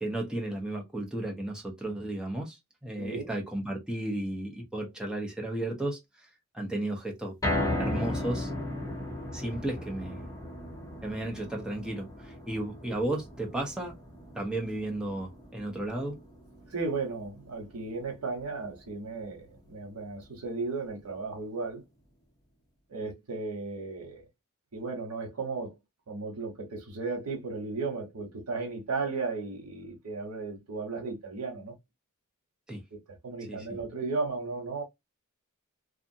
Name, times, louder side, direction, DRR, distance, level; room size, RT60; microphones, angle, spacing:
voice 1, 0.0-2.6 2.8-6.0 6.5-7.3 7.8-8.5 9.3-10.3 11.0-13.9 14.3-16.2 32.7-32.8 33.5-33.7, right 1 dB, 5° right, 0.8 m, -34 dB
voice 2, 3.0-3.3 16.7-21.8 22.9-24.2 24.7-25.7 26.1-31.8 32.9-34.8, right 4 dB, 80° right, 1.2 m, -35 dB
sound 1, 7.4-19.7 20.1-20.2 20.6-20.7, left 1 dB, 15° left, 1.0 m, -37 dB
2.6 x 2.4 x 2.6 m
head